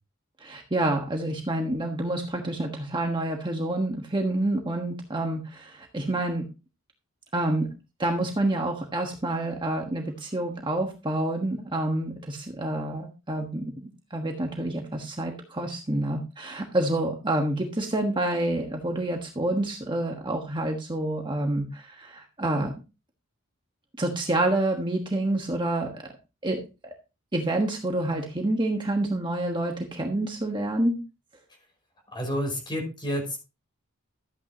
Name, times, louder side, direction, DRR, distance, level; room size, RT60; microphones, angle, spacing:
voice 1, 0.4-6.4 7.3-7.7 8.0-22.7 24.0-26.0 26.4-26.9 27.3-31.0, right 1 dB, 20° right, 2 dB, 1.3 m, -28 dB
voice 2, 32.1-33.4, equal, 20° left, 2 dB, 5.2 m, -29 dB
13.5 x 9.3 x 2.9 m, 0.29 s
head